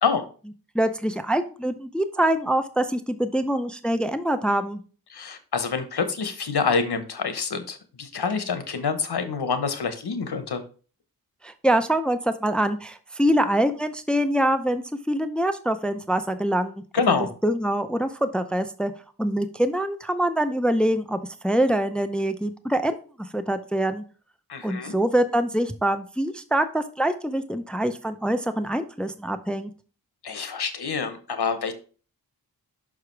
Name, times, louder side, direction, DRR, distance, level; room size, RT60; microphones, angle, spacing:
voice 1, 0.7-4.8 11.4-17.2 17.4-18.9 19.2-24.0 24.6-29.7, right 1 dB, 5° left, 9 dB, 0.5 m, -24 dB
voice 2, 5.1-10.6 16.9-17.3 24.5-25.0 30.2-31.7, left 5 dB, 85° left, 9 dB, 1.1 m, -26 dB
6.0 x 4.9 x 4.6 m, 0.38 s
wide cardioid pair, 65°, 38 cm